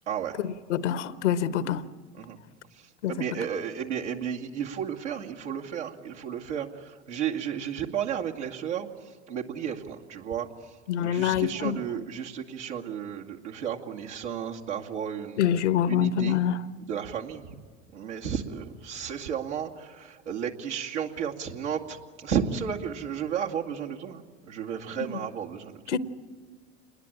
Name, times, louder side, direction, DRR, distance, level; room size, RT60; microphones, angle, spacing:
voice 1, 0.1-0.4 2.1-2.4 2.7-15.4 15.9-16.4 16.8-17.6 17.9-25.9, right 8 dB, 85° right, 2.4 m, -33 dB
voice 2, 0.7-1.8 3.0-3.1 10.9-11.8 15.4-16.6 25.9-26.0, left 10 dB, 80° left, 1.1 m, -25 dB
27.5 x 21.0 x 8.8 m
hypercardioid pair, 85°, 35 cm